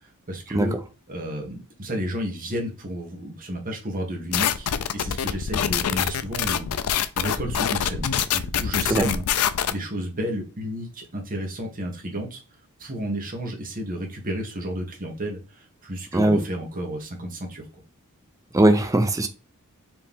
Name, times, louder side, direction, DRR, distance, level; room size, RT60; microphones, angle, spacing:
voice 1, 0.3-0.8 1.1-9.2 9.7-12.4 12.8-17.7, equal, 40° right, 1.4 m, -32 dB
sound 1, 4.3-9.7, left 8 dB, 80° left, 0.4 m, -25 dB
voice 2, 18.5-19.3, right 1 dB, 15° right, 0.6 m, -19 dB
4.5 x 3.1 x 3.6 m
head